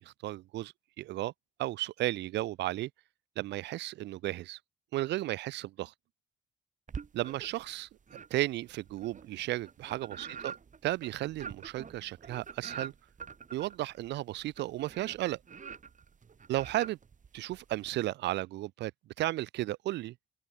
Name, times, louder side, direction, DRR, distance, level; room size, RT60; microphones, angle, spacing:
voice 1, 0.0-1.3 1.6-2.9 3.4-4.6 4.9-5.9 7.1-7.9 8.3-10.5 10.8-12.9 13.5-15.4 16.5-17.0 17.3-18.9 19.2-20.1, right 16 dB, 85° right, 1.4 m, -34 dB
sound 1, 6.9-7.7 8.1-17.9, right 6 dB, 45° right, 3.0 m, -46 dB
open air
supercardioid pair, 65°, 17 cm